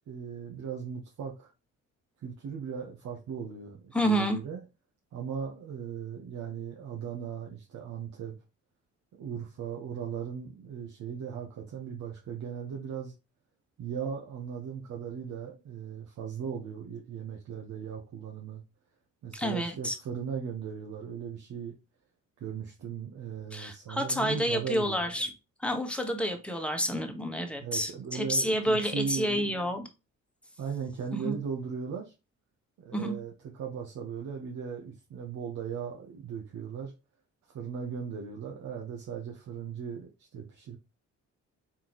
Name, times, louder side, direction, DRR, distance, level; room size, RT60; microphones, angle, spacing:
voice 1, 0.1-1.5 2.2-4.6 5.1-8.3 9.1-13.1 13.8-18.6 19.2-21.7 22.4-25.0 27.6-29.5 30.6-32.1 32.8-36.9 37.5-40.8, right 7 dB, 70° right, 1.3 m, -38 dB
voice 2, 3.9-4.4 19.3-20.0 23.5-25.3 25.6-29.9 31.2-31.3 32.9-33.2, equal, 5° left, 1.3 m, -29 dB
4.6 x 3.8 x 3.0 m
cardioid pair, 90°, 30 cm